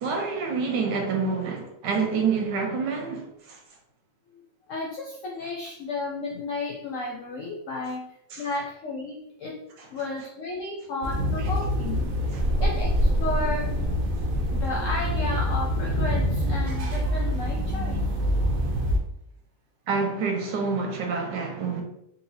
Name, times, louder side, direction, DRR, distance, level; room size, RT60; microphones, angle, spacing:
voice 1, 0.0-3.6 8.3-8.5 12.3-12.4 19.9-21.8, right 5 dB, 85° right, 1.4 m, -27 dB
voice 2, 4.7-9.6 9.9-12.0 12.6-13.7 14.5-18.0, left 2 dB, 75° left, 0.7 m, -33 dB
sound 1, 11.0-19.0, equal, 70° right, 0.9 m, -25 dB
3.9 x 2.7 x 2.7 m
omnidirectional pair, 1.9 m